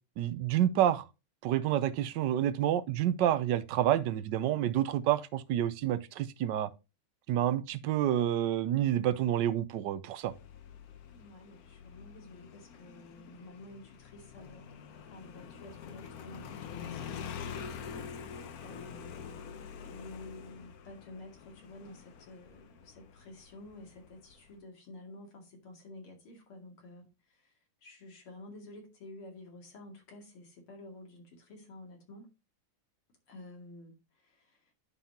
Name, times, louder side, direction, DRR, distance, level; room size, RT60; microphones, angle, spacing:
voice 1, 0.2-1.0 1.4-6.7 7.3-10.3, right 11 dB, 70° right, 1.1 m, -28 dB
Motorcycle, 10.3-24.6, left 7 dB, 60° left, 1.0 m, -46 dB
voice 2, 11.0-17.7 18.6-32.3 33.3-34.7, left 2 dB, 80° left, 3.3 m, -51 dB
11.5 x 5.5 x 2.8 m
omnidirectional pair, 2.4 m